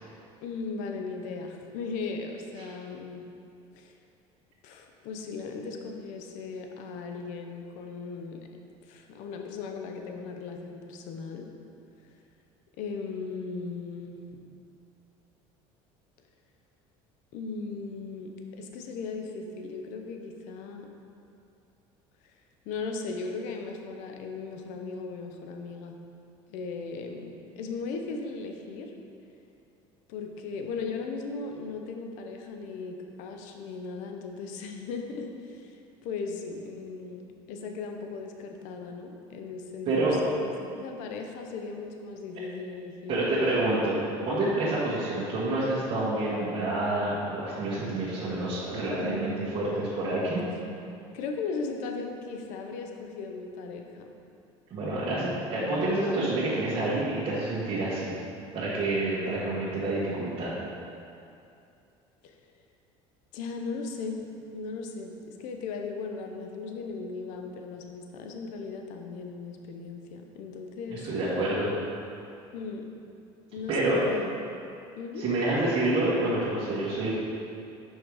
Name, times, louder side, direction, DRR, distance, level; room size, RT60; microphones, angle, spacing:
voice 1, 0.4-3.2 3.8-4.0 4.6-8.5 8.8-11.5 12.8-14.2 17.3-20.9 22.2-22.3 22.6-26.0 26.5-28.9 30.1-43.2 49.0-49.6 51.1-54.1 62.2-62.4 63.3-71.0 72.5-72.9 73.5-74.3 75.0-75.3, left 4 dB, 75° left, 3 dB, 0.7 m, -37 dB
voice 2, 39.8-40.2 43.1-50.4 54.7-58.2 58.5-60.5 70.9-71.7 73.7-74.0 75.2-77.1, right 2 dB, 45° right, -10 dB, 1.6 m, -28 dB
6.3 x 5.1 x 4.8 m, 2.6 s
cardioid pair, 120°, 13 cm